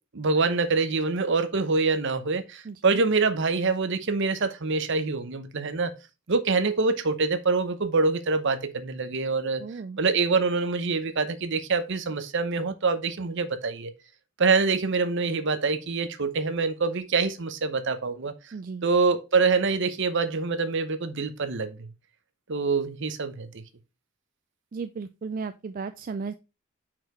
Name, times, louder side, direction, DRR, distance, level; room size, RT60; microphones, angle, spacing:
voice 1, 0.1-5.9 6.3-9.6 10.0-13.9 14.4-18.3 18.8-21.9 22.5-23.6, right 4 dB, 60° right, 0.9 m, -25 dB
voice 2, 2.6-3.0 9.6-10.0 18.5-18.9 24.7-26.3, right 4 dB, 45° right, 0.4 m, -35 dB
5.8 x 4.7 x 4.5 m
head